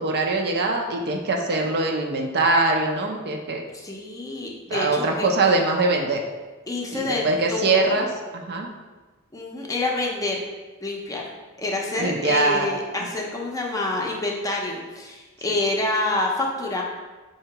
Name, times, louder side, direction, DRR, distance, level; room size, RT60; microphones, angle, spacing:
voice 1, 0.0-3.6 4.7-6.2 6.9-8.1 8.3-8.7 12.0-12.7, right 3 dB, 50° right, 2 dB, 0.5 m, -22 dB
voice 2, 3.7-5.3 6.7-7.2 7.5-7.9 9.3-10.4 10.8-11.2 11.6-16.8, left 2 dB, 15° left, -1 dB, 0.5 m, -27 dB
3.8 x 2.8 x 4.5 m, 1.2 s
head